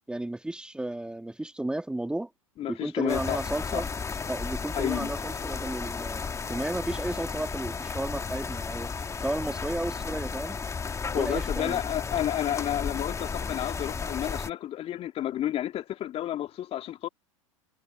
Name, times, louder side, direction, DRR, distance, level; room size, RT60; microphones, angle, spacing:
voice 1, 0.1-2.3 2.7-3.9 4.3-8.9 9.2-10.6 11.1-11.8 12.5-12.6, right 1 dB, 5° right, 2.3 m, -33 dB
voice 2, 2.6-3.4 3.7-3.8 4.7-5.1 11.1-17.1, left 12 dB, 35° left, 3.0 m, -31 dB
sound 1, 3.1-14.5, left 5 dB, 15° left, 1.9 m, -34 dB
hypercardioid pair, 95°, 17 cm